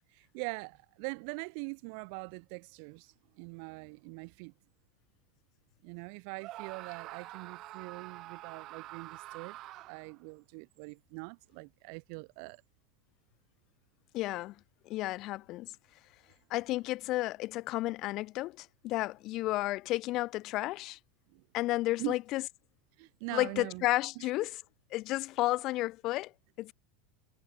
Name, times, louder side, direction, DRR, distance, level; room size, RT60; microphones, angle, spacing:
voice 1, 0.1-4.5 5.8-9.6 9.9-12.6 21.3-21.4 22.0-22.2 23.0-23.8 24.2-24.3, right 40 dB or more, 60° right, 4.4 m, -42 dB
Screaming, 6.4-10.2, right 16 dB, 45° right, 3.0 m, -46 dB
voice 2, 14.1-14.5 14.8-15.7 16.5-21.0 21.5-22.4 23.3-24.6 24.9-26.3 26.6-26.7, left 18 dB, 45° left, 1.4 m, -32 dB
supercardioid pair, 130°, 0 cm